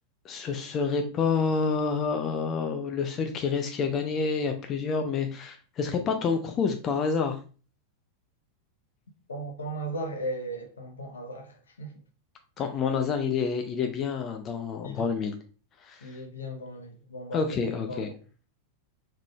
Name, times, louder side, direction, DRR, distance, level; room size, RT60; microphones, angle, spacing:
voice 1, 0.2-7.4 12.6-15.4 15.8-16.1 17.3-18.1, left 5 dB, 30° left, 0.4 m, -28 dB
voice 2, 9.3-11.9 14.8-15.1 16.0-18.2, right 1 dB, 70° left, 0.7 m, -37 dB
3.7 x 3.2 x 2.3 m
figure-of-eight pair, 90°, 0 cm